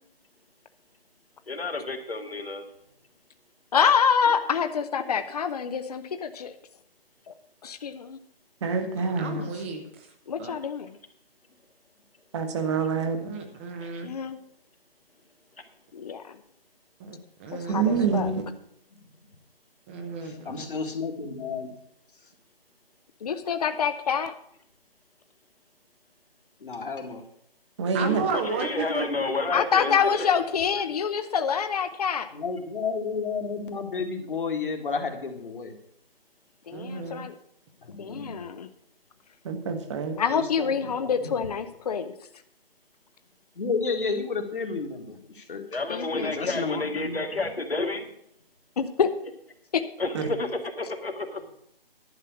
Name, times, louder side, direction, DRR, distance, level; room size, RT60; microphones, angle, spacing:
voice 1, 1.5-2.7 13.8-13.9 28.3-30.4 45.7-48.1 50.0-51.4, left 3 dB, 80° left, 4 dB, 2.0 m, -30 dB
voice 2, 3.7-6.5 7.3-7.4 7.6-8.2 10.3-11.0 14.0-14.4 15.9-16.4 17.5-18.3 23.2-24.3 29.5-32.3 36.7-37.3 38.0-38.7 40.2-42.1 45.9-46.3 48.8-49.1 49.7-49.8, left 7 dB, 40° left, 10 dB, 0.8 m, -26 dB
voice 3, 8.6-9.4 12.3-13.2 17.7-18.4 27.8-28.2 39.4-40.2, right 5 dB, 30° right, 6 dB, 1.3 m, -26 dB
voice 4, 9.2-10.1 10.4-10.6 13.2-14.1 17.0-18.1 19.9-20.7 27.9-29.1 36.7-37.2, right 4 dB, 15° right, 5 dB, 0.8 m, -33 dB
voice 5, 20.2-21.7 26.6-27.2 32.3-35.7 37.8-38.5 40.3-41.5 43.6-45.7 46.2-47.2, left 4 dB, 60° left, 4 dB, 2.1 m, -32 dB
11.0 x 5.6 x 8.4 m, 0.70 s
figure-of-eight pair, 150°, 29 cm